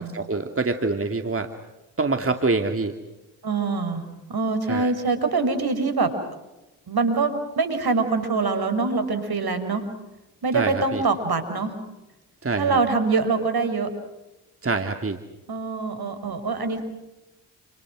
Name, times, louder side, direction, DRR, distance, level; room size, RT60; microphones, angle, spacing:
voice 1, 0.0-1.5 2.0-2.9 4.7-4.9 10.5-11.0 12.4-12.8 14.6-15.2, right 3 dB, 30° right, 6 dB, 2.6 m, -25 dB
voice 2, 3.4-4.0 4.3-6.1 6.9-9.9 10.4-11.8 12.6-13.9 15.5-16.8, right 4 dB, 50° right, 9 dB, 5.5 m, -24 dB
30.0 x 28.5 x 6.3 m, 1.0 s
hypercardioid pair, 45°, 46 cm